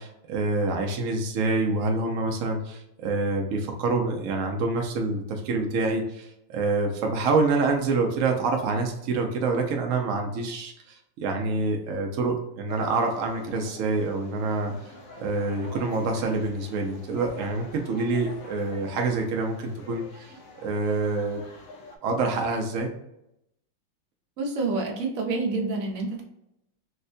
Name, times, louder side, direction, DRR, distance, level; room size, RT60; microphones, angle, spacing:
voice 1, 0.0-10.7 11.2-14.7 15.2-20.3 20.6-21.4 22.0-22.9, right 3 dB, 85° right, 2 dB, 0.7 m, -26 dB
sound 1, 12.7-22.0, left 2 dB, 65° left, 0.8 m, -46 dB
voice 2, 24.4-26.2, right 3 dB, 60° right, 1 dB, 1.0 m, -28 dB
4.5 x 2.1 x 2.5 m, 0.81 s
omnidirectional pair, 2.0 m